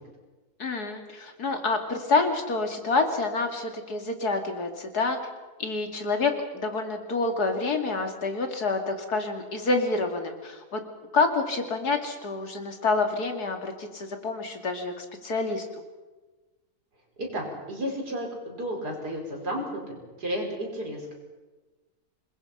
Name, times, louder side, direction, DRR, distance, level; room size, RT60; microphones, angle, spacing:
voice 1, 0.6-5.2 5.6-10.8 11.1-15.7, left 3 dB, 80° left, 5 dB, 3.0 m, -27 dB
voice 2, 17.2-21.1, equal, 90° right, 1 dB, 5.6 m, -33 dB
26.0 x 21.5 x 5.8 m, 1.2 s
omnidirectional pair, 1.7 m